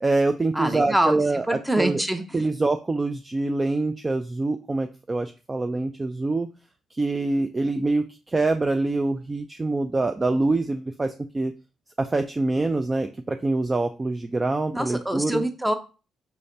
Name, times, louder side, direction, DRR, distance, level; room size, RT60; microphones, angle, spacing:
voice 1, 0.0-2.0 2.3-6.5 6.9-11.5 12.0-15.4, right 2 dB, 25° right, 7 dB, 0.3 m, -25 dB
voice 2, 0.5-1.2 1.5-2.2 14.7-15.7, right 1 dB, 5° right, 7 dB, 0.7 m, -24 dB
5.6 x 3.2 x 2.6 m, 0.33 s
cardioid pair, 90°, 0 cm